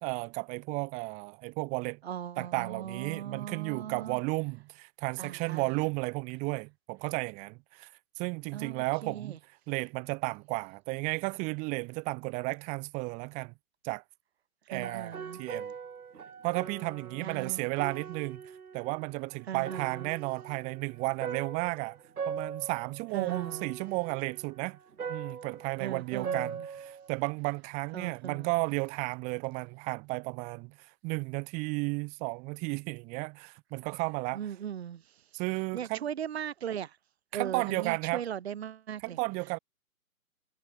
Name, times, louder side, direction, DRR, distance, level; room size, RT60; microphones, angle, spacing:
voice 1, 0.0-2.0 2.4-9.3 9.7-13.5 13.8-14.0 14.7-15.7 16.4-24.8 25.1-34.4 35.3-36.0 37.3-38.2 39.0-39.6, right 28 dB, 15° right, 1.6 m, -33 dB
voice 2, 2.0-4.2 5.2-5.8 8.5-9.4 14.7-15.4 17.2-17.7 19.5-20.1 23.1-23.7 25.8-26.6 27.9-28.5 34.3-35.3 35.7-37.0 37.3-39.2, right 9 dB, 45° right, 1.7 m, -38 dB
sound 1, 14.8-19.2 19.5-27.1, right 6 dB, 75° right, 1.0 m, -41 dB
figure-of-eight pair, 135°, 44 cm